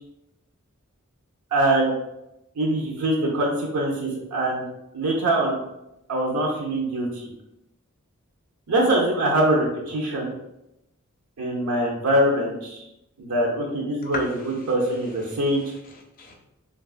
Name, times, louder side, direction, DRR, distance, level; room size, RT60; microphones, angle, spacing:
voice 1, 1.5-1.9 2.6-4.6 4.9-5.6 6.1-7.3 8.7-10.3 11.4-12.8 13.2-14.3 14.7-15.6, right 1 dB, 80° right, -2 dB, 0.6 m, -23 dB
voice 2, 14.0-14.7 15.3-16.3, left 3 dB, 40° left, 2 dB, 0.5 m, -37 dB
3.1 x 2.3 x 2.4 m, 0.88 s
head